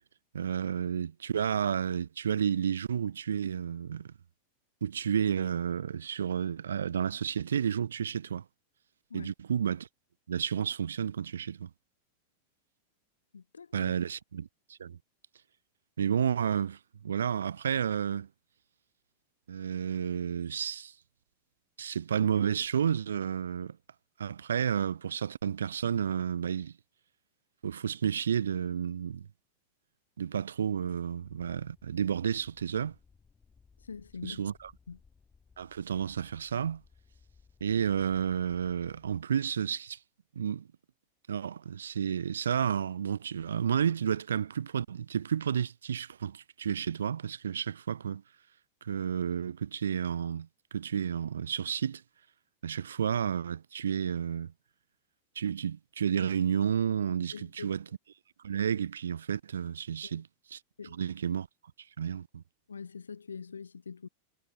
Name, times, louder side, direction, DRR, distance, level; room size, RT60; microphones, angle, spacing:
voice 1, 0.3-4.1 4.8-8.4 9.1-9.9 10.3-11.7 13.7-15.0 16.0-18.3 19.5-20.9 21.8-23.8 24.2-26.7 27.6-29.3 30.2-33.0 34.2-34.7 35.6-36.8 37.6-40.0 40.4-40.7 41.3-48.2 48.8-52.0 52.6-54.5 55.4-57.8 58.4-60.6 60.9-61.5 62.0-62.4, right 8 dB, 80° right, 0.5 m, -31 dB
voice 2, 13.3-13.9 33.8-34.4 34.9-35.0 57.3-57.8 60.0-60.2 60.8-61.0 62.7-64.1, left 5 dB, 85° left, 0.9 m, -44 dB
sound 1, 31.2-39.2, left 5 dB, 15° left, 6.1 m, -62 dB
hypercardioid pair, 95°, 0 cm